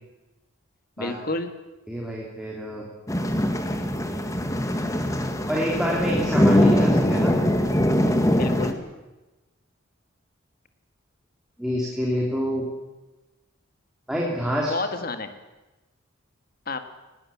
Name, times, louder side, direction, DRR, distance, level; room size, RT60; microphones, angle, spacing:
voice 1, 1.0-1.5 8.3-8.8 14.7-15.3 16.6-16.8, left 2 dB, 45° left, 8 dB, 1.8 m, -29 dB
voice 2, 1.9-2.8 3.9-4.2 5.5-7.4 11.6-12.6 14.1-14.7, equal, 5° right, -3 dB, 3.2 m, -27 dB
sound 1, 3.1-8.7, left 1 dB, 15° left, 1.6 m, -22 dB
19.5 x 18.0 x 8.6 m, 1.1 s
head